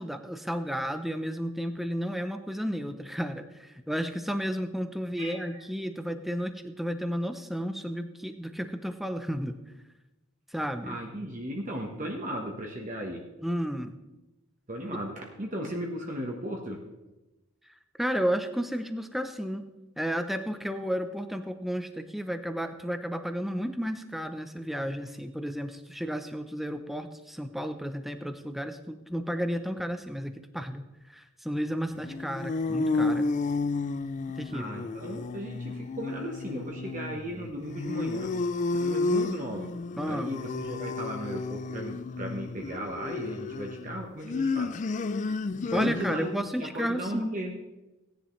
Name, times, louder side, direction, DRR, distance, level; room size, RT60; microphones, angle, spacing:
voice 1, 0.0-9.5 10.5-11.0 13.4-13.9 17.7-19.6 20.0-33.3 34.4-34.7 40.0-40.4 45.7-47.4, equal, ahead, 7 dB, 0.6 m, -32 dB
voice 2, 5.2-5.6 10.8-13.2 14.7-16.8 34.5-38.3 38.8-39.7 40.0-44.8 45.7-47.5, equal, 35° right, 0 dB, 1.2 m, -36 dB
sound 1, 32.0-46.5, left 3 dB, 35° left, 0.3 m, -31 dB
17.5 x 10.0 x 3.2 m, 1.0 s
head